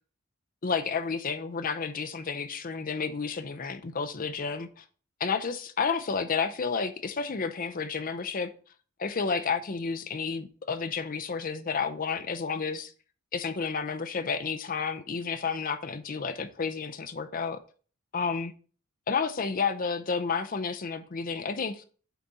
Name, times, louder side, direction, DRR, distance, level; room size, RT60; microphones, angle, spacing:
voice 1, 0.6-4.8 5.2-8.5 9.0-12.9 13.3-17.6 18.1-18.5 19.1-21.8, left 5 dB, 40° left, 0.6 m, -31 dB
8.4 x 4.2 x 3.9 m
head